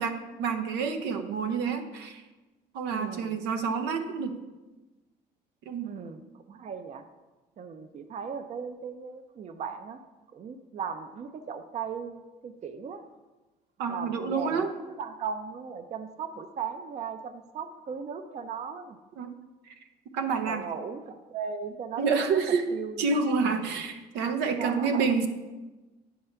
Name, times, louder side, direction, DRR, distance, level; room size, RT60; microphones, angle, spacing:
voice 1, 0.0-2.2 2.7-4.4 5.7-5.9 13.8-14.7 19.2-19.3 19.7-19.8 20.1-20.7 22.0-25.3, right 5 dB, 90° right, 8 dB, 0.7 m, -28 dB
voice 2, 2.9-3.4 5.8-6.2 6.5-7.0 7.6-10.0 10.3-13.0 13.9-19.0 20.4-22.1 22.3-23.1 23.4-23.8 24.6-25.3, right 6 dB, 40° right, 9 dB, 0.5 m, -37 dB
9.4 x 3.3 x 5.7 m, 1.2 s
cardioid pair, 110°, 17 cm